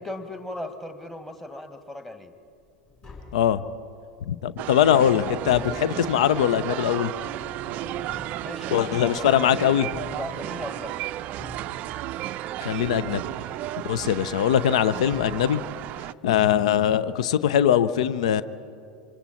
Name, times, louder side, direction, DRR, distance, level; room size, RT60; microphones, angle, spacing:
voice 1, 0.0-2.3 8.4-9.4 10.2-11.0, left 1 dB, 5° left, 7 dB, 1.9 m, -37 dB
Tap, 2.6-2.7 2.9-4.0 4.4-9.2 9.8-10.8 11.4-12.4 12.8-13.7 14.7-14.8 15.1-15.9 16.2-16.3, left 2 dB, 30° left, 6.0 m, -44 dB
voice 2, 3.3-3.6 4.3-7.1 8.7-9.9 12.6-13.2 13.8-15.6 16.2-18.4, left 10 dB, 60° left, 16 dB, 0.7 m, -21 dB
sound 1, 4.6-16.1, right 14 dB, 40° right, 0.4 m, -33 dB
27.5 x 25.5 x 4.3 m, 2.4 s
figure-of-eight pair, 80°, 4 cm